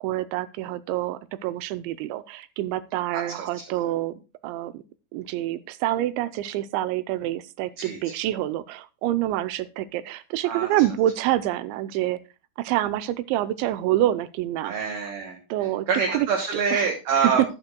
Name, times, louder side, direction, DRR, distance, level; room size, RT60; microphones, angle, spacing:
voice 1, 0.0-4.1 4.4-4.8 5.1-12.2 12.6-14.9 15.5-16.3 16.7-16.9 17.2-17.3, right 14 dB, 85° right, 14 dB, 2.8 m, -27 dB
voice 2, 3.1-3.8 7.8-8.1 10.4-10.7 14.6-15.4 15.9-17.4, right 5 dB, 60° right, 1 dB, 3.1 m, -26 dB
12.0 x 11.5 x 2.2 m, 0.29 s
omnidirectional pair, 5.4 m